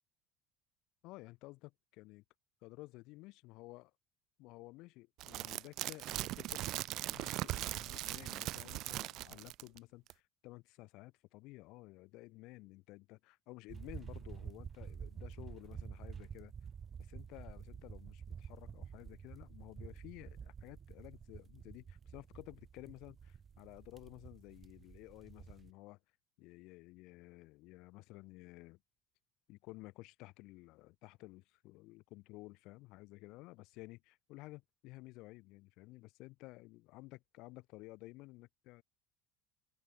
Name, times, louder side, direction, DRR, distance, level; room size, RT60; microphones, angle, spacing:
voice 1, 1.0-2.2 2.6-3.9 4.4-16.5 17.0-26.0 26.4-28.8 29.5-38.8, left 21 dB, 65° left, 2.6 m, -54 dB
sound 1, 5.2-9.8 10.1-10.2, right 16 dB, 55° right, 0.6 m, -40 dB
sound 2, 13.7-25.7, right 7 dB, 25° right, 4.0 m, -49 dB
cardioid pair, 150°, 0 cm